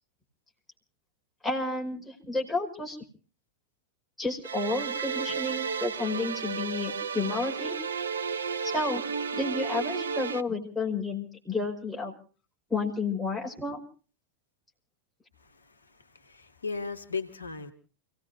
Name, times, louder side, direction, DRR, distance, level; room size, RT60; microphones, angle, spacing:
voice 1, 1.4-3.0 4.2-7.8 8.7-9.0 9.3-12.1 12.7-13.8, left 3 dB, ahead, -2 dB, 5.1 m, -31 dB
sound 1, 4.4-10.4, right 6 dB, 70° right, 0.8 m, -33 dB
voice 2, 15.4-17.7, left 4 dB, 75° left, 6 dB, 1.5 m, -37 dB
30.0 x 18.0 x 2.6 m, 0.37 s
figure-of-eight pair, 90°, 0 cm